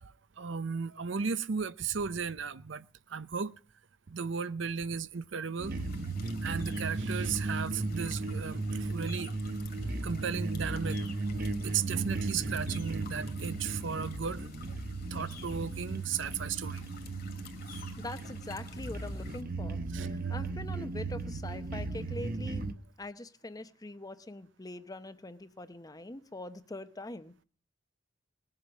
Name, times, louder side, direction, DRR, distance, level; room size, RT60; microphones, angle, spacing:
voice 1, 0.0-3.5 4.1-5.8 6.4-9.3 10.0-11.0 11.6-14.4 15.1-16.8 17.7-17.8 19.9-20.5, right 6 dB, 70° right, 0.7 m, -35 dB
sound 1, 5.6-19.4, left 7 dB, 50° left, 2.3 m, -53 dB
sound 2, 5.6-22.7, right 3 dB, 50° right, 1.0 m, -36 dB
voice 2, 18.0-19.8 20.1-22.7 23.0-27.4, left 2 dB, 20° left, 0.8 m, -43 dB
19.5 x 7.7 x 6.2 m
head